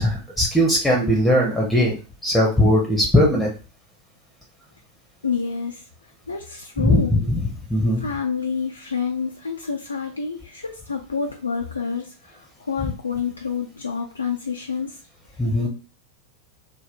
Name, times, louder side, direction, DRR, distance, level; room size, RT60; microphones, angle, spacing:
voice 1, 0.0-1.9 2.2-3.5 6.8-7.4 7.7-8.0 15.4-15.7, left 1 dB, 5° left, -2 dB, 0.7 m, -19 dB
voice 2, 5.2-5.9 6.3-7.1 8.0-15.0, left 5 dB, 80° left, 2 dB, 0.3 m, -28 dB
2.7 x 2.1 x 3.4 m, 0.35 s
figure-of-eight pair, 90°, 0 cm